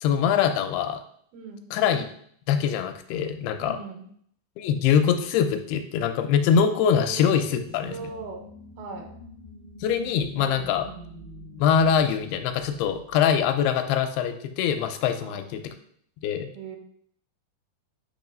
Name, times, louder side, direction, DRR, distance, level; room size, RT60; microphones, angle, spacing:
voice 1, 0.0-1.0 1.7-2.0 2.5-3.8 4.6-8.0 9.8-10.9 11.6-15.6 16.2-16.5, left 7 dB, 90° left, 7 dB, 2.6 m, -23 dB
voice 2, 1.3-1.7 3.6-4.1 7.0-7.6 7.9-8.5 8.8-9.2 10.7-11.0 15.2-15.5 16.5-16.8, right 5 dB, 75° right, 3 dB, 2.9 m, -40 dB
sound 1, 7.4-13.8, equal, 45° left, 0.4 m, -45 dB
8.7 x 3.1 x 5.3 m, 0.63 s
omnidirectional pair, 4.5 m